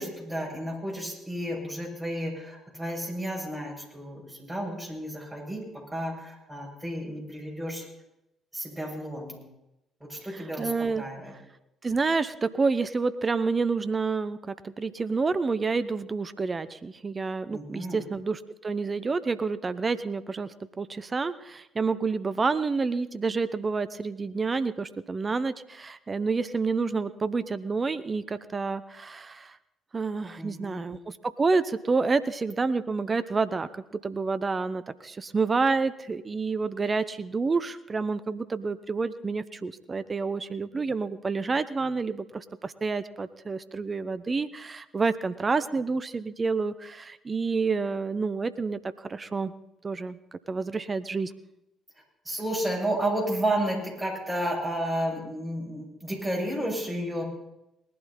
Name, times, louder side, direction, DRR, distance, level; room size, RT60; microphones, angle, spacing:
voice 1, 0.0-5.6 5.9-7.8 8.5-9.4 10.1-10.7 11.0-11.3 17.5-18.0 30.4-30.8 52.2-57.2, right 1 dB, 10° right, -2 dB, 6.8 m, -32 dB
voice 2, 10.3-11.0 11.3-11.4 11.8-29.6 29.9-49.5 49.8-51.3, right 4 dB, 30° right, 13 dB, 0.6 m, -29 dB
19.5 x 11.5 x 4.2 m, 0.86 s
figure-of-eight pair, 45°, 0 cm